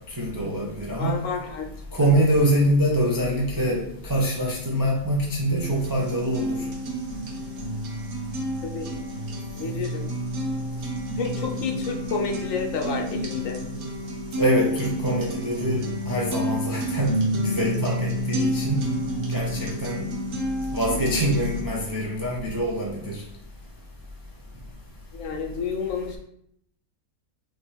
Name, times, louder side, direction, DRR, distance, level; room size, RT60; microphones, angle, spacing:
voice 1, 0.2-1.2 1.9-6.6 14.4-18.8 19.3-20.1 20.7-23.2, equal, 25° right, -3 dB, 0.4 m, -24 dB
voice 2, 1.0-1.7 2.0-2.1 8.6-8.9 9.5-10.1 11.2-13.6 25.1-26.2, left 5 dB, 70° left, 2 dB, 1.0 m, -30 dB
sound 1, 5.6-21.6, equal, 80° right, 1.4 m, -30 dB
5.3 x 2.9 x 3.4 m, 0.72 s
omnidirectional pair, 1.5 m